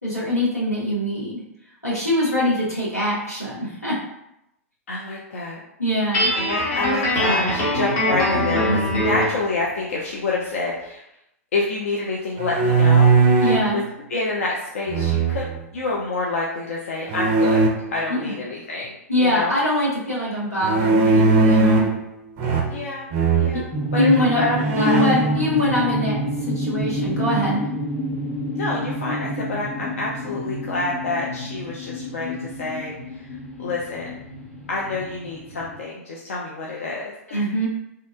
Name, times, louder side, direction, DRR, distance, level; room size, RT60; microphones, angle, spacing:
voice 1, 0.0-1.4 1.8-4.0 5.8-6.3 13.4-13.8 18.1-18.3 19.1-21.9 23.5-23.6 24.0-24.4 24.8-26.3 26.5-27.6 37.3-37.7, left 1 dB, 85° left, -7 dB, 1.0 m, -23 dB
voice 2, 4.9-5.6 6.3-11.0 11.5-13.1 13.7-13.8 14.1-15.5 15.7-17.7 17.9-19.6 22.7-23.1 23.4-23.7 24.0-25.0 28.5-33.3 33.6-34.1 34.7-37.5, left 3 dB, 60° left, -4 dB, 0.4 m, -27 dB
Guitar, 6.1-9.4, equal, 35° left, 0.9 m, -22 dB
sound 1, 12.4-13.7 14.9-15.6 17.1-17.7 20.6-22.0 22.4-22.9 23.1-23.5 24.1-24.2 24.6-25.3, right 3 dB, 35° right, 0.4 m, -18 dB
sound 2, 23.7-35.8, equal, 10° left, 0.6 m, -28 dB
2.8 x 2.1 x 2.2 m, 0.83 s
figure-of-eight pair, 100°, 8 cm